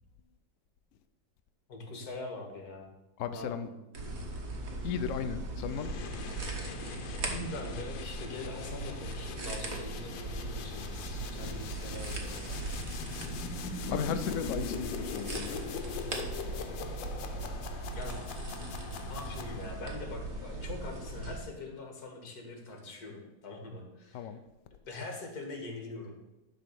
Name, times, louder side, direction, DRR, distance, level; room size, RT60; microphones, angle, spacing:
voice 1, 1.7-2.9 3.3-3.7 7.3-12.6 18.0-18.2 19.1-24.3 24.9-26.2, left 2 dB, 55° left, 3 dB, 2.1 m, -43 dB
voice 2, 3.2-3.7 4.8-5.9 13.9-15.6 24.1-24.4, left 7 dB, 75° left, 9 dB, 0.7 m, -35 dB
sound 1, 3.9-21.4, right 2 dB, 50° right, 1.7 m, -39 dB
sound 2, 5.7-20.0, left 6 dB, 90° left, 1.5 m, -42 dB
11.5 x 4.0 x 6.8 m, 1.0 s
omnidirectional pair, 2.0 m